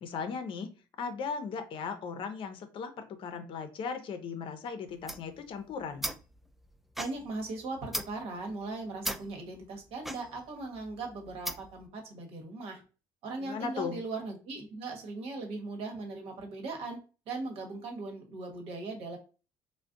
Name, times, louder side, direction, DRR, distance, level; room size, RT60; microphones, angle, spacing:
voice 1, 0.0-6.1 13.4-13.9, left 5 dB, 55° left, 9 dB, 0.6 m, -37 dB
sound 1, 4.9-11.9, equal, ahead, 0.3 m, -40 dB
voice 2, 7.0-12.8 13.2-17.0 17.3-19.2, right 3 dB, 70° right, 3 dB, 1.0 m, -39 dB
2.4 x 2.2 x 3.6 m, 0.34 s
supercardioid pair, 80°, 10 cm